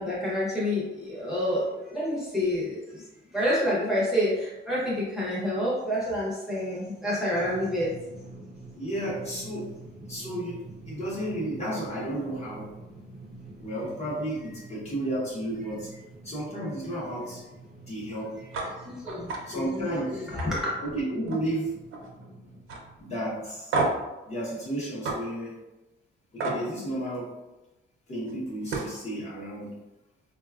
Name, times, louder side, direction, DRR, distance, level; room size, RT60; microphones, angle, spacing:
voice 1, 0.0-3.0 3.3-7.9 18.8-20.7, equal, ahead, -8 dB, 0.7 m, -28 dB
Drum, 7.3-23.5, right 2 dB, 35° right, 0.6 m, -47 dB
voice 2, 8.7-9.7 10.1-12.7 13.6-15.9 16.2-17.4 17.8-18.4 19.4-20.3 20.8-21.8 23.0-23.7 24.3-25.6 26.3-27.4 28.1-29.8, right 1 dB, 30° left, -6 dB, 0.8 m, -32 dB
sound 1, 18.5-18.7 19.1-19.4 19.8-20.0 20.4-21.6 21.8-22.3 22.7-22.8 23.7-24.1 25.0-25.2 26.4-26.6 28.3-28.4 28.7-29.0, right 2 dB, 75° right, 0.6 m, -30 dB
3.9 x 2.2 x 2.3 m, 1.0 s
cardioid pair, 170°, 21 cm